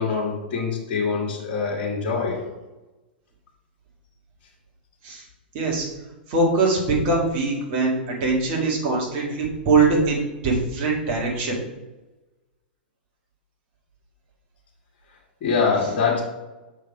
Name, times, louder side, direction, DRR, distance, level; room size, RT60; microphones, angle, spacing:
voice 1, 0.0-2.4 15.4-16.2, left 5 dB, 45° left, -4 dB, 1.8 m, -24 dB
voice 2, 5.5-5.9 6.3-11.6, right 3 dB, 45° right, -2 dB, 2.2 m, -22 dB
6.3 x 3.9 x 5.0 m, 1.1 s
figure-of-eight pair, 100°, 5 cm